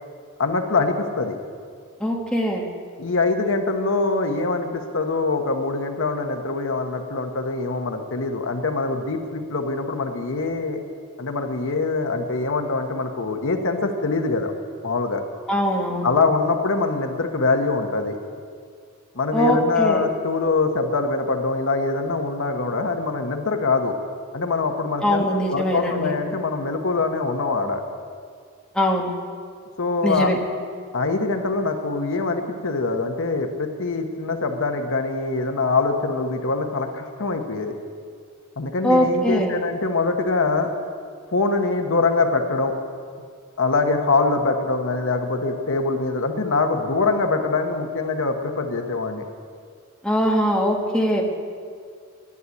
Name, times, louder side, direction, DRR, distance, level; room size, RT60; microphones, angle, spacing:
voice 1, 0.4-1.4 3.0-10.8 11.2-14.5 14.8-15.2 16.0-18.2 19.1-24.0 24.3-27.8 29.8-30.3 30.9-37.8 38.6-40.7 41.3-42.7 43.6-49.2, left 3 dB, 65° left, 5 dB, 1.2 m, -23 dB
voice 2, 2.0-2.6 15.5-16.1 19.3-20.0 25.0-26.1 28.7-29.1 30.0-30.4 38.8-39.6 50.0-51.2, equal, 5° left, -1 dB, 1.5 m, -21 dB
11.0 x 11.0 x 8.4 m, 2.1 s
head